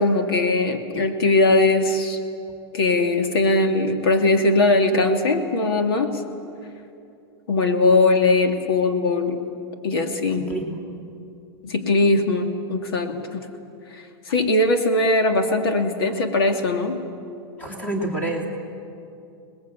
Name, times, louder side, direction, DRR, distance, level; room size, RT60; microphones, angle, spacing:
voice 1, 0.0-2.2 2.7-6.2 7.5-9.5 9.8-10.5 11.6-13.5 13.9-17.0, left 2 dB, 65° left, 5 dB, 2.4 m, -20 dB
voice 2, 17.6-18.5, right 2 dB, 10° left, 2 dB, 2.5 m, -27 dB
28.0 x 20.0 x 8.5 m, 2.6 s
supercardioid pair, 175°, 13 cm